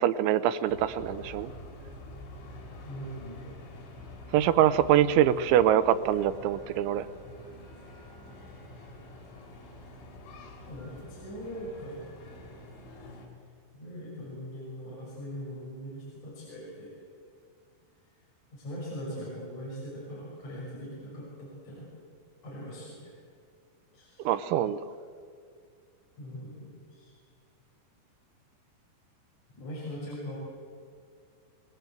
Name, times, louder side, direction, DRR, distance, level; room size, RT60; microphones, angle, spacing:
voice 1, 0.0-1.5 4.3-7.1 24.3-24.8, right 11 dB, 90° right, 12 dB, 3.3 m, -24 dB
sound 1, 0.6-13.3, left 1 dB, 90° left, 6.7 m, -47 dB
voice 2, 2.8-3.6 10.7-12.0 13.7-17.0 18.5-21.9 22.4-23.1 23.9-24.3 26.2-27.1 29.5-30.4, equal, 40° left, -5 dB, 7.4 m, -41 dB
29.0 x 19.0 x 8.1 m, 2.2 s
omnidirectional pair, 5.2 m